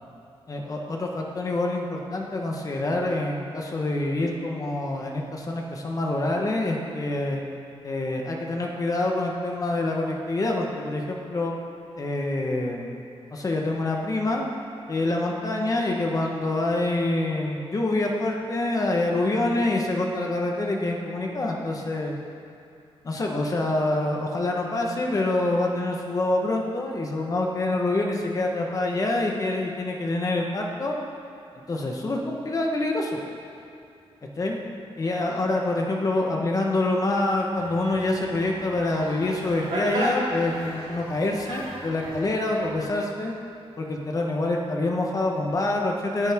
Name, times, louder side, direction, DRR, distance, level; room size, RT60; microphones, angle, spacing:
voice 1, 0.5-7.4 7.8-11.5 12.0-12.9 13.3-14.4 14.9-22.2 23.0-31.0 31.7-33.2 34.4-34.6 35.0-43.3 43.8-46.3, left 2 dB, 35° left, 0 dB, 1.3 m, -26 dB
sound 1, 37.5-42.7, right 1 dB, 80° right, 3.8 m, -34 dB
19.0 x 10.5 x 3.7 m, 2.6 s
wide cardioid pair, 150°, 10 cm